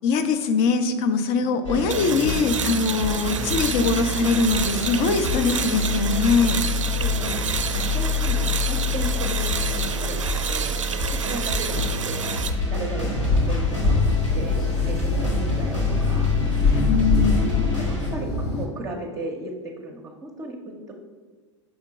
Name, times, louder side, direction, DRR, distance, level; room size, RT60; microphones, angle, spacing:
voice 1, 0.0-6.6 16.7-17.6, left 4 dB, 45° left, 9 dB, 0.6 m, -22 dB
sound 1, 1.6-18.1, left 4 dB, 85° left, 1.8 m, -27 dB
voice 2, 1.9-2.2 7.0-7.4 7.7-9.5 9.8-10.8 11.1-12.3 12.7-16.4 17.4-20.9, right 1 dB, 20° right, 0 dB, 0.7 m, -35 dB
sound 2, 1.9-12.5, right 6 dB, 80° right, 0.4 m, -29 dB
sound 3, 12.9-18.7, left 3 dB, 60° left, 1.4 m, -24 dB
6.3 x 3.6 x 4.8 m, 1.4 s
figure-of-eight pair, 90°, 16 cm